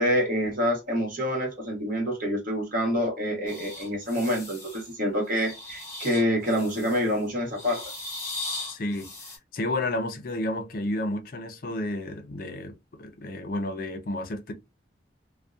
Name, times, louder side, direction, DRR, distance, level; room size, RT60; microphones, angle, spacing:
voice 1, 0.0-7.9, equal, 50° right, 1.0 m, -27 dB
sound 1, 3.5-4.9 5.3-7.2 7.5-9.4, left 2 dB, 15° left, 0.9 m, -38 dB
voice 2, 8.7-9.1 9.5-12.7 13.0-14.5, left 1 dB, 50° left, 0.5 m, -31 dB
2.6 x 2.0 x 2.3 m
head